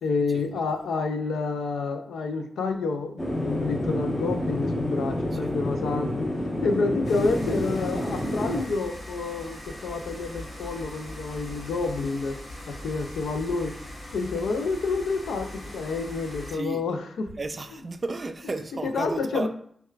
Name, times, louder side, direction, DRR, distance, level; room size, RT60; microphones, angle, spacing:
voice 1, 0.0-12.4 12.7-13.7 14.1-17.3 18.8-19.5, left 4 dB, 85° left, 0.3 m, -29 dB
sound 1, 3.2-8.6, left 1 dB, 30° left, 1.0 m, -29 dB
sound 2, 7.0-16.5, left 1 dB, 65° left, 1.4 m, -41 dB
voice 2, 17.4-19.5, right 3 dB, 50° right, 0.4 m, -33 dB
5.4 x 2.3 x 2.3 m
supercardioid pair, 45°, 0 cm